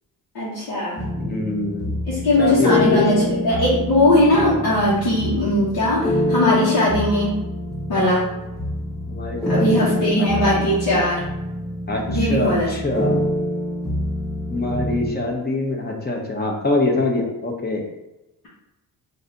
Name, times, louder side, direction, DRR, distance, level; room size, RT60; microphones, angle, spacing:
voice 1, 0.3-1.1 2.1-7.4 7.9-8.3 9.5-11.2 12.1-12.7, left 1 dB, 80° left, -9 dB, 1.4 m, -19 dB
sound 1, 1.0-15.1, left 1 dB, ahead, 0.5 m, -25 dB
voice 2, 1.2-1.9 2.4-3.3 9.1-10.3 10.6-10.7 11.9-13.2 14.5-17.9, left 2 dB, 25° left, 0 dB, 0.9 m, -24 dB
3.8 x 2.8 x 4.0 m, 0.95 s
cardioid pair, 110°, 37 cm